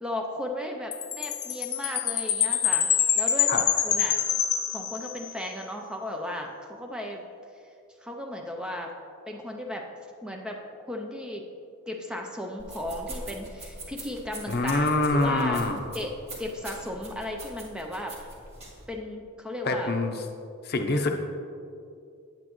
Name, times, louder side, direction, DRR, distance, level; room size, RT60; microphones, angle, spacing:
voice 1, 0.0-2.9 3.2-4.2 4.7-7.2 8.0-8.9 9.3-9.9 10.2-10.6 10.9-11.4 11.9-15.6 15.9-16.1 16.4-18.1 18.9-19.9, left 1 dB, 5° right, 2 dB, 0.5 m, -35 dB
Chime, 0.9-5.4, left 9 dB, 85° left, 0.7 m, -26 dB
sound 1, 12.6-18.9, right 1 dB, 30° right, 1.6 m, -43 dB
voice 2, 14.5-15.8 19.6-20.2 20.6-21.1, left 2 dB, 50° left, 4 dB, 0.6 m, -25 dB
8.9 x 8.3 x 3.0 m, 2.4 s
head